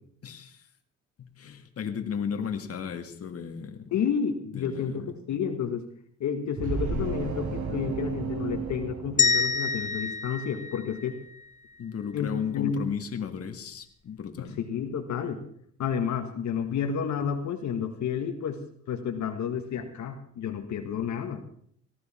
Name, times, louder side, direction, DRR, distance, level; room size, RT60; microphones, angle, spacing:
voice 1, 0.2-0.6 1.2-3.9 4.5-5.1 11.8-14.6, left 7 dB, 50° left, 5 dB, 1.8 m, -35 dB
voice 2, 3.9-5.8 6.2-11.2 12.1-12.8 14.4-15.4 15.8-18.6 18.9-21.4, left 7 dB, 70° left, 5 dB, 1.7 m, -30 dB
sound 1, 6.6-10.0, right 4 dB, 80° right, 2.7 m, -33 dB
sound 2, 9.2-11.4, left 5 dB, 25° left, 0.6 m, -27 dB
18.5 x 14.0 x 4.4 m, 0.63 s
cardioid pair, 90°, 30 cm